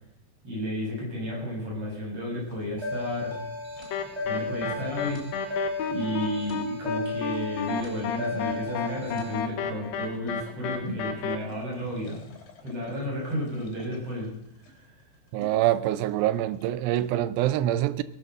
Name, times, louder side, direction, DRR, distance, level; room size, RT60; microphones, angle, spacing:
voice 1, 0.4-3.4 4.2-5.2 5.9-12.2 12.6-14.3 14.6-14.9, equal, 30° right, 7.3 m, -32 dB
sound 1, 2.4-17.1, left 1 dB, 90° left, 5.6 m, -47 dB
sound 2, 2.8-9.4, left 2 dB, 10° right, 2.3 m, -35 dB
sound 3, 3.9-11.4, left 5 dB, 65° left, 2.7 m, -32 dB
voice 2, 15.3-18.0, right 13 dB, 80° right, 2.7 m, -25 dB
18.5 x 11.0 x 6.6 m
omnidirectional pair, 5.2 m